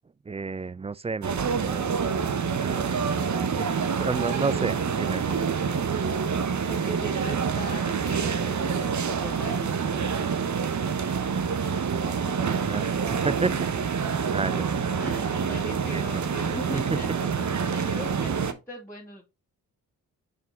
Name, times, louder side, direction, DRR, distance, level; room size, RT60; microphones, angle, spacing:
voice 1, 0.3-2.0 2.5-3.1 3.6-3.7 4.0-5.4 12.0-12.2 12.6-14.8 15.9-16.0 16.7-16.8, right 4 dB, 15° right, 0.3 m, -32 dB
sound 1, 1.2-18.5, right 6 dB, 45° right, 0.9 m, -27 dB
voice 2, 6.7-9.7 11.7-11.8 15.0-17.1 17.4-19.2, equal, 5° left, 2.2 m, -40 dB
6.0 x 4.5 x 3.9 m
supercardioid pair, 40°, 41 cm